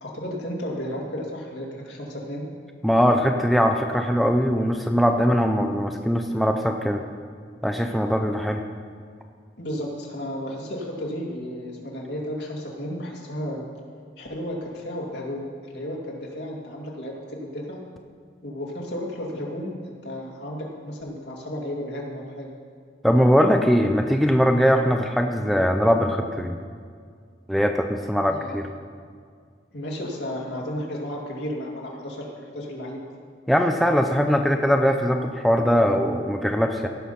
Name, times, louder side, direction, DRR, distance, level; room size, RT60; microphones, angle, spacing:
voice 1, 0.0-2.5 9.6-13.6 14.2-17.8 18.4-22.5 28.3-28.6 29.7-33.0, equal, 65° left, -2 dB, 2.2 m, -33 dB
voice 2, 2.8-7.0 7.6-8.6 23.0-26.6 27.5-28.7 33.5-36.9, equal, ahead, 4 dB, 0.4 m, -21 dB
16.5 x 5.6 x 5.7 m, 2.1 s
head